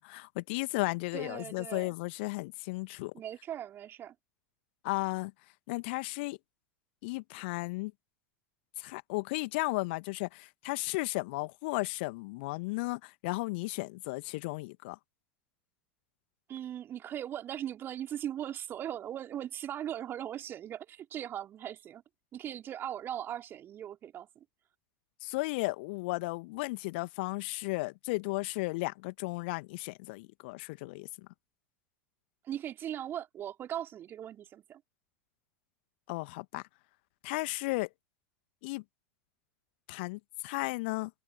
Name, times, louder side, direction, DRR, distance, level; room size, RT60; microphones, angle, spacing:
voice 1, 0.0-3.1 4.8-5.3 5.7-6.4 7.0-7.9 8.8-15.0 25.2-31.1 36.1-36.6 37.2-37.9 38.6-38.8 39.9-41.1, left 25 dB, 50° left, 1.6 m, -34 dB
voice 2, 1.1-1.9 3.1-4.1 16.5-22.0 22.3-24.4 32.4-34.8, right 10 dB, 30° right, 4.0 m, -39 dB
open air
figure-of-eight pair, 85°, 7 cm